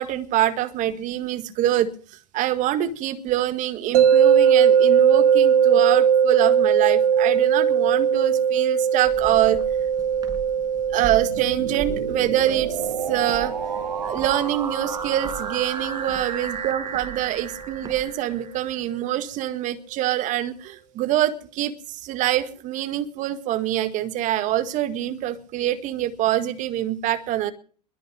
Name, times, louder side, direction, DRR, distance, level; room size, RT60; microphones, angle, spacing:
voice 1, 0.0-1.9 2.3-9.6 10.9-12.8 13.1-13.5 14.0-27.5, right 13 dB, 35° right, 11 dB, 1.8 m, -25 dB
sound 1, 3.9-17.0, right 8 dB, 60° right, 1.9 m, -20 dB
Walk footsteps, 9.0-18.1, right 6 dB, 20° right, 6.2 m, -41 dB
sound 2, 10.9-18.8, right 5 dB, 85° right, 2.6 m, -33 dB
22.0 x 9.1 x 6.2 m, 0.44 s
hypercardioid pair, 100°, 21 cm